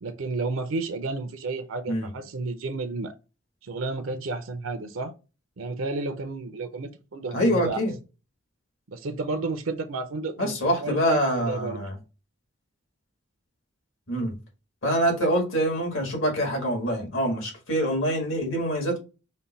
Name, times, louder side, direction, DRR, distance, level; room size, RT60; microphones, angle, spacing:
voice 1, 0.0-3.1 3.6-5.1 5.6-7.8 8.9-10.5 10.8-11.8, right 3 dB, 80° right, 0.6 m, -31 dB
voice 2, 7.3-7.9 10.4-11.9 14.1-14.3 14.8-19.0, equal, 70° left, 1.7 m, -25 dB
5.2 x 2.2 x 4.0 m
head